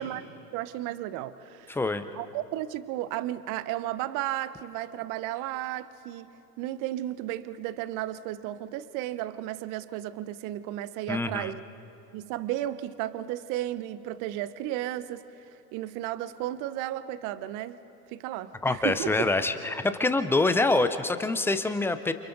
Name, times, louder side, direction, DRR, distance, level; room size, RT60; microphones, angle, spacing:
voice 1, 0.0-1.8 2.1-6.3 6.6-11.6 12.1-15.2 15.7-17.8 18.1-19.1, right 13 dB, 40° right, 15 dB, 0.9 m, -34 dB
voice 2, 1.7-2.0 11.1-11.5 18.6-22.1, left 2 dB, 5° left, 10 dB, 0.5 m, -25 dB
29.0 x 28.0 x 4.0 m, 2.8 s
hypercardioid pair, 105°, 50 cm